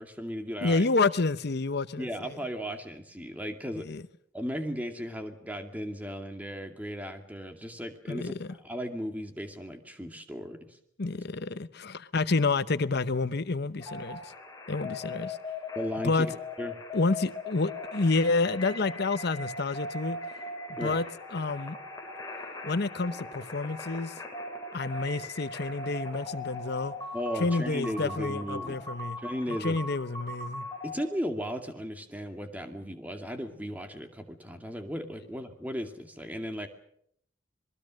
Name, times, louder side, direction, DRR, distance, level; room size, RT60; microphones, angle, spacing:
voice 1, 0.0-0.9 2.0-3.9 4.3-10.8 15.8-16.3 16.6-16.7 20.8-21.0 27.1-28.8 29.2-29.8 30.8-36.7, equal, 10° right, 2.4 m, -36 dB
voice 2, 0.6-2.4 3.8-4.0 8.1-8.5 11.0-14.3 14.7-15.4 16.0-16.3 16.9-20.2 20.7-21.0 21.3-21.8 22.6-24.1 24.7-26.9 27.4-29.2 29.6-30.7, left 3 dB, 60° left, 0.9 m, -29 dB
sound 1, 13.8-31.0, left 2 dB, 20° left, 5.7 m, -39 dB
26.5 x 21.0 x 6.4 m
head